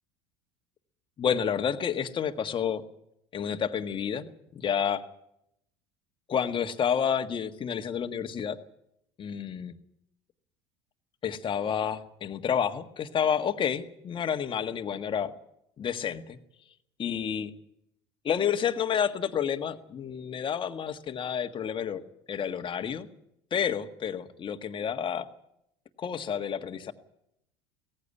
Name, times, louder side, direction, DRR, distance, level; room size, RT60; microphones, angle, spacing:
voice 1, 1.2-2.8 3.3-4.3 4.5-5.0 6.3-8.6 9.2-9.7 11.2-15.3 15.8-16.4 17.0-17.5 18.2-22.0 22.3-23.1 23.5-25.3 26.0-26.9, left 8 dB, 35° left, 8 dB, 1.6 m, -29 dB
18.0 x 15.0 x 9.9 m, 0.79 s
hypercardioid pair, 75°, 14 cm